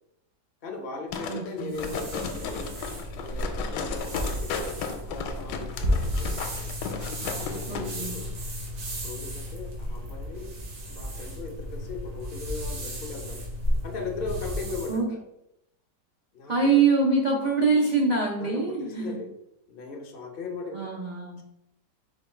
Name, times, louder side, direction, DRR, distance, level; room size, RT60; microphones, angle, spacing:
voice 1, 0.6-2.8 3.2-6.4 7.3-8.3 8.9-10.5 10.9-13.4 13.8-15.2 16.3-16.7 18.4-19.3 19.7-20.9, left 3 dB, 65° left, 2 dB, 0.5 m, -38 dB
sound 1, 1.1-7.9 8.2-8.3, left 6 dB, 80° left, 1.2 m, -35 dB
voice 2, 1.3-1.9 7.7-8.2 14.9-15.1 16.5-19.2 20.7-21.4, right 4 dB, 90° right, -2 dB, 0.4 m, -24 dB
sound 2, 1.7-15.0, equal, 70° right, 1.7 m, -33 dB
5.0 x 2.3 x 4.4 m, 0.81 s
omnidirectional pair, 1.9 m